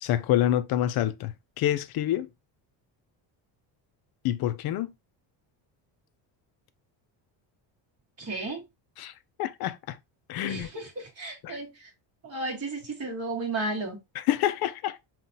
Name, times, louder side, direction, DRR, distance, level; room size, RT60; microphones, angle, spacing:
voice 1, 0.0-2.3 4.2-4.9 9.0-9.1 9.4-10.0 10.3-10.7 11.4-11.5 14.2-15.1, left 12 dB, 50° left, 0.5 m, -27 dB
voice 2, 8.2-8.6 10.4-11.9 12.2-14.0, right 2 dB, 30° right, 1.4 m, -33 dB
5.5 x 2.5 x 2.6 m
cardioid pair, 140°, 48 cm